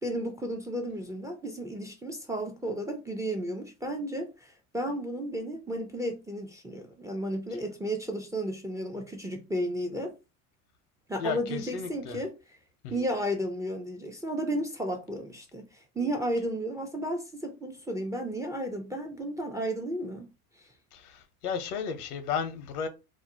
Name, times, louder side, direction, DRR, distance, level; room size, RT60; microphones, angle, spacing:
voice 1, 0.0-10.1 11.1-12.3 12.9-20.3 20.6-20.7, right 1 dB, 10° right, 0.3 m, -33 dB
voice 2, 11.2-12.2 12.8-12.9 20.9-22.9, left 6 dB, 80° left, 0.7 m, -34 dB
2.5 x 2.0 x 2.7 m
hypercardioid pair, 85°, 44 cm